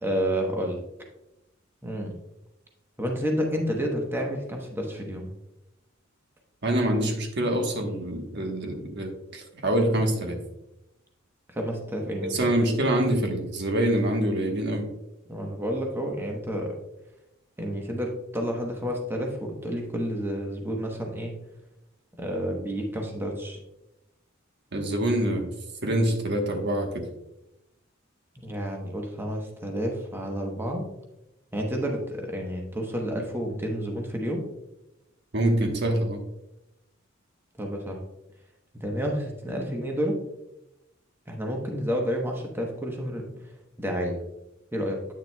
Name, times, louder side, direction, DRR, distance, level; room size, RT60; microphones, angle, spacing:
voice 1, 0.0-0.8 1.8-2.1 3.0-5.3 11.5-12.5 15.3-16.7 17.6-21.3 22.2-23.6 28.4-30.8 31.5-34.4 37.6-38.0 38.8-40.2 41.3-43.3 43.8-44.2 44.7-45.0, equal, 10° right, 1 dB, 1.0 m, -30 dB
voice 2, 6.6-10.4 12.2-14.9 24.7-25.5 25.8-27.1 35.3-36.2, right 1 dB, 55° right, 3 dB, 1.2 m, -25 dB
8.6 x 6.7 x 2.2 m, 0.90 s
head